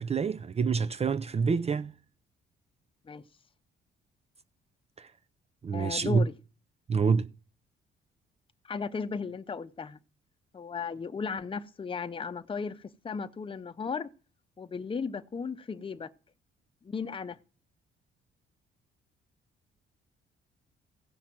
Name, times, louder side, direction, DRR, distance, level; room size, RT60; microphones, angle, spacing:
voice 1, 0.0-1.9 5.0-5.1 5.6-6.3 6.9-7.3, right 5 dB, 30° right, 0.5 m, -27 dB
voice 2, 5.7-6.3 8.6-10.0 10.5-14.1 14.6-16.1 16.8-17.4, left 5 dB, 25° left, 0.8 m, -35 dB
15.5 x 5.8 x 7.6 m
cardioid pair, 90°, 20 cm